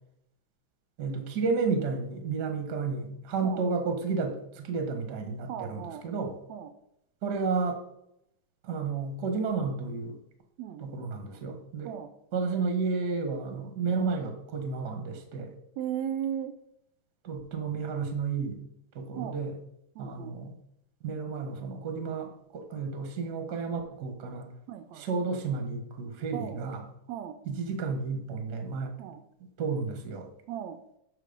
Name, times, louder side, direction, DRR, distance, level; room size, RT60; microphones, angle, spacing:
voice 1, 1.0-6.3 7.2-7.8 8.6-10.2 10.8-11.9 12.3-15.5 17.2-18.6 18.9-19.5 20.0-20.5 21.0-24.5 24.9-26.8 27.4-28.9 29.6-30.3, right 4 dB, 45° right, 5 dB, 1.3 m, -32 dB
voice 2, 5.5-6.0 6.5-6.7 10.6-10.9 11.9-12.1 15.8-16.5 19.2-19.4 20.0-20.4 24.7-25.1 26.3-26.6 27.1-27.4 29.0-29.2 30.5-30.8, right 10 dB, 75° right, 8 dB, 1.6 m, -36 dB
12.5 x 4.2 x 5.2 m, 0.77 s
omnidirectional pair, 3.7 m